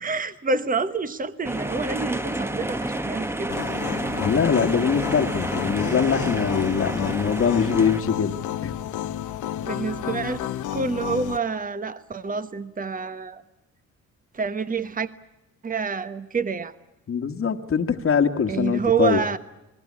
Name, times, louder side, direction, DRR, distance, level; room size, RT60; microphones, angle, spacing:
voice 1, 0.0-3.6 9.6-10.4 10.7-13.4 14.3-15.1 15.6-16.7 18.5-19.4, right 5 dB, 25° right, 12 dB, 1.3 m, -27 dB
sound 1, 1.4-8.0, right 1 dB, 10° right, 1.2 m, -29 dB
sound 2, 3.5-11.4, left 11 dB, 80° left, 1.1 m, -31 dB
voice 2, 4.2-8.7 17.1-19.2, left 6 dB, 45° left, 4 dB, 1.6 m, -23 dB
29.0 x 21.0 x 8.6 m, 0.95 s
cardioid pair, 90°, 30 cm